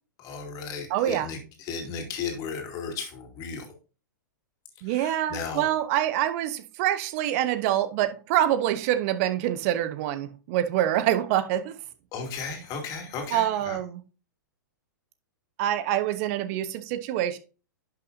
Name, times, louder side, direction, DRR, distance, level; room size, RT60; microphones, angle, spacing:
voice 1, 0.2-3.7 4.8-5.6 12.1-13.8, left 5 dB, 35° left, 2.5 m, -35 dB
voice 2, 0.9-1.3 4.8-11.8 13.3-14.0 15.6-17.4, right 12 dB, 45° right, 1.0 m, -26 dB
11.0 x 5.9 x 2.7 m
hypercardioid pair, 110°, 11 cm